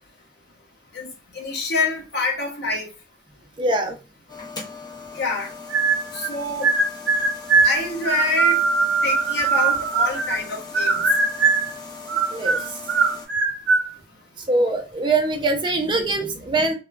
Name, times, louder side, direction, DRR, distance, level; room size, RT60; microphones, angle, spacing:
voice 1, 0.9-2.9 5.1-5.5 6.1-6.7 7.6-8.6 9.0-11.0, left 3 dB, 65° left, 0.7 m, -26 dB
voice 2, 3.6-4.0 12.3-12.6 14.5-16.7, right 2 dB, 25° right, 0.4 m, -22 dB
sound 1, 4.3-13.3, left 4 dB, 25° left, 0.6 m, -39 dB
sound 2, 5.7-6.3 6.6-10.5 10.7-11.7 12.1-13.9, right 4 dB, 90° right, 0.5 m, -20 dB
2.9 x 2.1 x 2.3 m
head